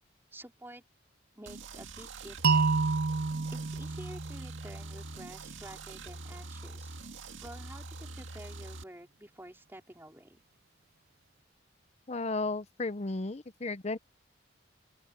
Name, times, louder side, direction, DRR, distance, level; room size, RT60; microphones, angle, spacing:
voice 1, 0.3-0.8 1.4-3.0 3.5-7.0 7.4-10.4, right 1 dB, 10° right, 4.0 m, -50 dB
sound 1, 1.5-8.8, right 2 dB, 75° right, 2.0 m, -44 dB
sound 2, 2.4-5.4, right 4 dB, 50° right, 0.5 m, -29 dB
voice 2, 12.1-14.0, left 3 dB, 35° left, 0.7 m, -34 dB
open air
head